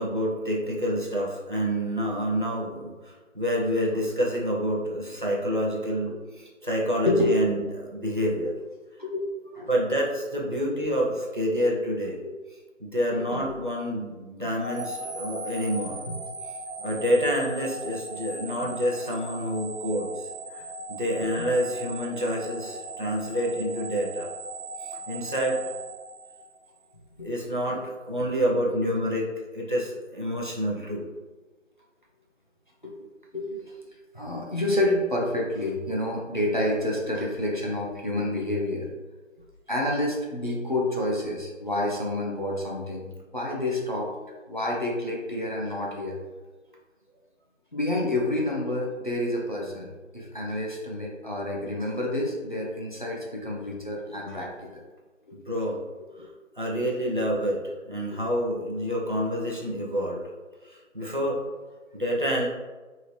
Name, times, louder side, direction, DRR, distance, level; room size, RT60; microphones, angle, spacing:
voice 1, 0.0-7.6 7.9-8.5 9.7-12.2 12.8-16.0 16.8-24.3 24.8-25.6 27.2-29.3 29.5-31.1 55.3-55.8 56.2-56.3 56.6-60.3 60.6-61.4 61.9-62.5, equal, 40° right, -3 dB, 0.6 m, -28 dB
voice 2, 7.0-7.5 8.4-8.5 9.0-9.7 12.2-12.3 13.1-13.5 16.1-16.2 18.6-18.8 21.4-21.5 27.2-27.3 27.7-27.8 32.8-33.1 33.3-33.7 34.1-38.9 39.7-44.1 44.5-46.2 47.7-49.9 50.1-54.8 55.3-55.4 56.2-56.3 57.2-57.4, left 1 dB, 40° left, -2 dB, 0.5 m, -29 dB
sound 1, 14.6-26.8, right 2 dB, 85° right, 0.6 m, -38 dB
2.9 x 2.8 x 3.1 m, 1.3 s
figure-of-eight pair, 170°, 39 cm